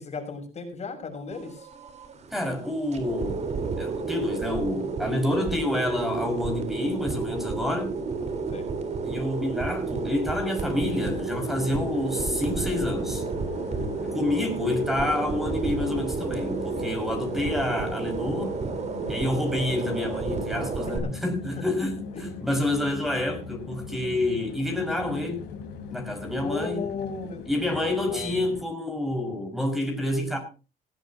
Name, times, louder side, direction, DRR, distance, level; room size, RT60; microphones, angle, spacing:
voice 1, 0.0-1.7 8.5-8.8 20.8-21.1 22.1-22.2 26.4-27.8 28.1-28.5, left 4 dB, 40° left, 6.2 m, -36 dB
sound 1, 1.3-21.0, right 4 dB, 40° right, 4.2 m, -31 dB
voice 2, 2.3-3.5 3.8-7.9 9.0-13.2 14.1-18.6 19.1-25.4 25.9-26.8 27.5-30.4, left 1 dB, ahead, 5.5 m, -28 dB
sound 2, 10.9-28.6, left 5 dB, 90° left, 4.5 m, -40 dB
20.0 x 15.0 x 2.9 m
cardioid pair, 110°, 17 cm